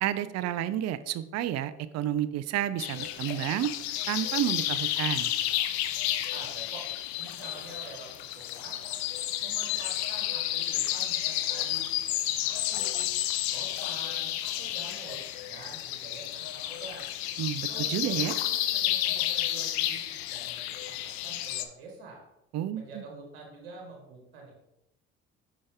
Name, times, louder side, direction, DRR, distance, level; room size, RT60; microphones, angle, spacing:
voice 1, 0.0-3.7 4.1-5.3 17.4-18.3 22.5-22.8, right 11 dB, 55° right, 14 dB, 0.5 m, -30 dB
sound 1, 2.8-21.6, left 13 dB, 90° left, 0.5 m, -31 dB
voice 2, 6.3-6.9 7.2-9.0 9.4-13.2 13.5-17.1 17.7-22.2 22.7-24.6, right 3 dB, 90° right, 0 dB, 1.3 m, -47 dB
5.5 x 5.2 x 3.4 m, 0.89 s
hypercardioid pair, 60°, 31 cm